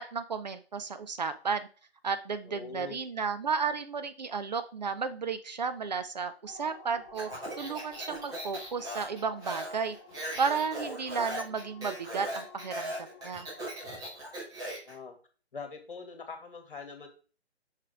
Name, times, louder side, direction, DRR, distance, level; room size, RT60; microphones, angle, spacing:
voice 1, 0.0-1.7 2.0-10.0 10.4-12.9 13.2-13.5, right 5 dB, 40° right, 10 dB, 0.6 m, -33 dB
voice 2, 2.4-3.1 14.8-15.2 15.5-17.1, left 5 dB, 50° left, 5 dB, 2.2 m, -43 dB
sound 1, 6.5-14.0, left 2 dB, 15° left, 0.5 m, -52 dB
Speech, 7.1-14.9, right 1 dB, 10° right, 2.2 m, -39 dB
6.7 x 6.1 x 3.6 m, 0.38 s
figure-of-eight pair, 135°, 33 cm